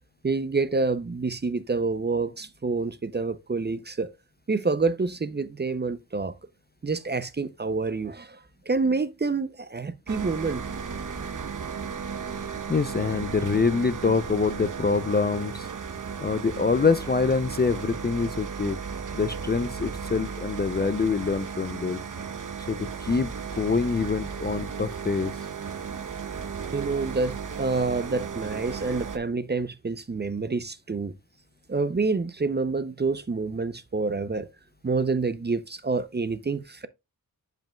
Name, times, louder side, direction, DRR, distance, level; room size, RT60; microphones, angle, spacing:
voice 1, 0.2-4.1 4.5-6.4 6.8-8.4 8.7-10.6 26.7-31.1 31.7-34.5 34.8-36.9, right 4 dB, 30° right, 0.5 m, -27 dB
sound 1, 10.1-29.2, right 6 dB, 55° right, 0.9 m, -35 dB
voice 2, 12.7-15.7 16.2-18.8 19.1-22.0 22.7-25.3, left 4 dB, 30° left, 0.4 m, -25 dB
10.5 x 5.2 x 2.2 m
wide cardioid pair, 115°, 37 cm